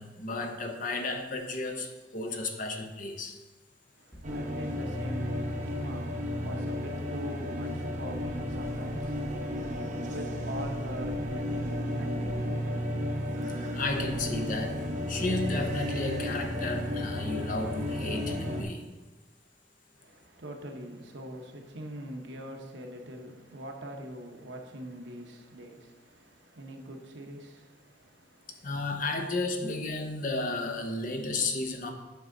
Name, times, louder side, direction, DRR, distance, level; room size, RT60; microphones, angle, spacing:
voice 1, 0.0-3.4 13.7-14.8 15.1-18.8 28.6-31.9, left 2 dB, 45° left, 0.9 m, -33 dB
voice 2, 4.0-13.0 20.0-28.7, right 1 dB, 75° right, 1.1 m, -43 dB
sound 1, 4.1-4.8 5.6-5.8 6.6-6.8 7.6-7.8 8.1-9.8 10.5-11.8 12.1-12.4, equal, 10° left, 1.7 m, -47 dB
sound 2, 4.2-18.6, equal, 45° right, 1.1 m, -33 dB
9.2 x 6.1 x 3.9 m
head